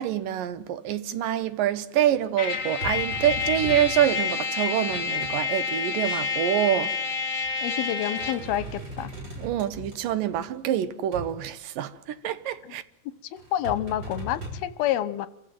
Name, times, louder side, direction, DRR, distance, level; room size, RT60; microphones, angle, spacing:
voice 1, 0.0-7.0 9.4-12.8, right 11 dB, 70° right, 2.5 m, -26 dB
sound 1, 1.9-4.1 4.6-5.4 6.9-7.0 7.4-7.7 8.0-10.5 11.1-11.3 13.4-14.6, right 1 dB, 30° right, 6.8 m, -38 dB
Trumpet, 2.4-8.5, left 5 dB, 35° left, 3.8 m, -29 dB
voice 2, 7.6-9.1 13.3-15.3, left 12 dB, 85° left, 3.0 m, -28 dB
27.0 x 15.5 x 9.0 m
omnidirectional pair, 4.3 m